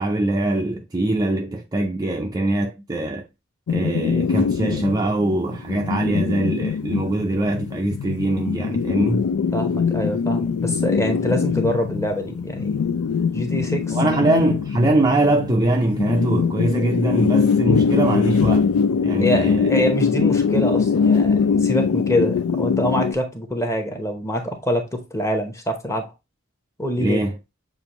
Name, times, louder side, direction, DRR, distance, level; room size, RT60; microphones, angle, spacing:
voice 1, 0.0-3.3 3.7-9.3 13.9-18.7 19.0-19.7 27.0-27.4, right 2 dB, 20° right, 0.4 m, -22 dB
sound 1, 3.7-23.1, left 5 dB, 80° left, 0.4 m, -22 dB
voice 2, 6.0-6.3 9.5-12.8 13.3-14.3 19.2-26.1 26.8-27.2, equal, 15° left, 0.9 m, -25 dB
6.9 x 2.5 x 3.0 m
head